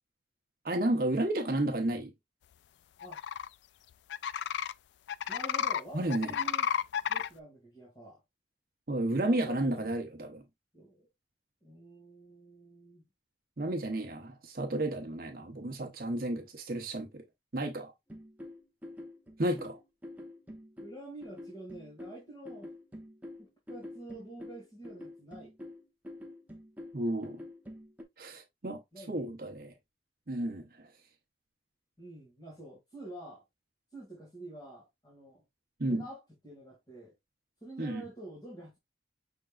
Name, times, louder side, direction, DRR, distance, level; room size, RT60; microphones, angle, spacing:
voice 1, 0.6-2.1 5.9-6.3 8.9-10.4 13.6-17.2 17.5-17.9 19.4-19.8 26.9-27.4 28.2-29.7 30.3-30.9 35.8-36.0 37.8-38.0, right 1 dB, 55° right, 0.9 m, -32 dB
sound 1, 3.0-3.5 4.1-4.7 5.1-5.8 6.1-7.3, left 8 dB, 80° left, 0.3 m, -31 dB
voice 2, 5.3-6.7 7.1-8.2 9.1-9.9 10.7-11.1 11.6-13.1 20.8-22.8 23.4-25.5 28.9-29.2 32.0-33.4 33.9-35.4 35.9-37.1 37.6-38.8, right 1 dB, 25° left, 2.2 m, -47 dB
sound 2, 18.1-28.0, left 1 dB, 10° right, 0.9 m, -47 dB
6.0 x 3.7 x 2.4 m
head